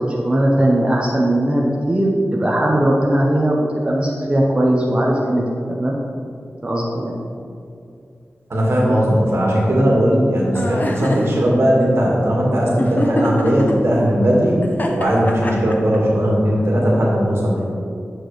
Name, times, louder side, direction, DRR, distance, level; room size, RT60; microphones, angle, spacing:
voice 1, 0.0-6.0 6.6-7.2, right 1 dB, 25° right, -3 dB, 0.9 m, -18 dB
voice 2, 8.5-14.6 14.9-17.6, equal, 70° right, -4 dB, 1.8 m, -17 dB
sound 1, 10.5-11.3 12.8-13.7 14.6-16.0, left 1 dB, 40° left, 0.8 m, -23 dB
9.1 x 6.0 x 3.2 m, 2.4 s
wide cardioid pair, 95°, 5 cm